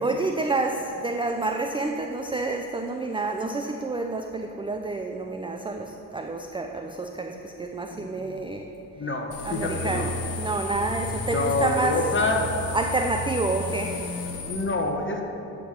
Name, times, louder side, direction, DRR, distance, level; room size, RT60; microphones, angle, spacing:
voice 1, 0.0-8.7 9.4-12.0 12.7-14.0, right 3 dB, 10° right, 4 dB, 0.4 m, -29 dB
voice 2, 7.9-8.4 9.0-10.1 11.3-12.5 14.5-15.2, left 2 dB, 25° left, 2 dB, 1.3 m, -27 dB
sound 1, 9.3-14.6, left 2 dB, 55° left, 1.5 m, -33 dB
11.0 x 3.7 x 6.5 m, 2.9 s
hypercardioid pair, 45°, 48 cm